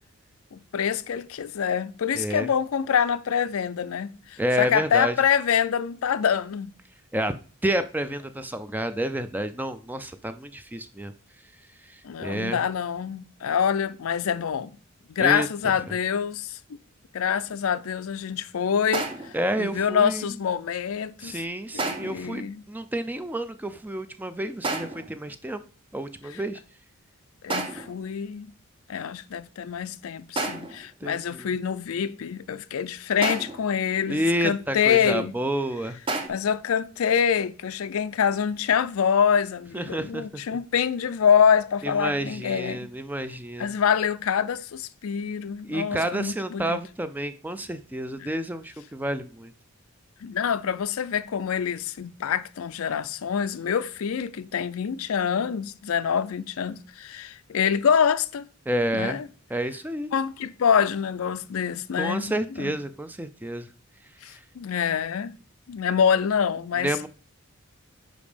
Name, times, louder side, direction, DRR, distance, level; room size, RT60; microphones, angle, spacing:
voice 1, 0.5-6.7 12.0-14.7 15.2-16.6 17.1-19.1 19.6-21.4 21.7-22.6 26.3-26.4 27.4-28.5 28.9-35.3 36.3-42.9 43.6-46.8 48.2-48.4 50.2-58.5 58.9-59.3 60.1-62.8 64.2-65.4 65.7-67.1, left 7 dB, 75° left, 0.4 m, -25 dB
voice 2, 2.1-2.5 4.4-5.1 7.1-7.3 7.6-11.1 11.9-12.6 15.2-15.7 19.3-20.4 21.2-25.6 25.9-26.6 31.0-31.5 34.1-36.0 39.7-40.4 41.8-43.7 45.7-49.5 58.7-59.2 59.5-60.1 62.0-63.7 64.3-64.4 66.8-67.1, right 1 dB, 10° right, 0.3 m, -29 dB
sound 1, 18.9-19.4 21.8-22.3 24.6-25.2 27.5-28.0 30.4-30.9 33.2-33.7 36.1-36.3, right 2 dB, 25° right, 0.8 m, -30 dB
5.2 x 5.1 x 5.0 m
head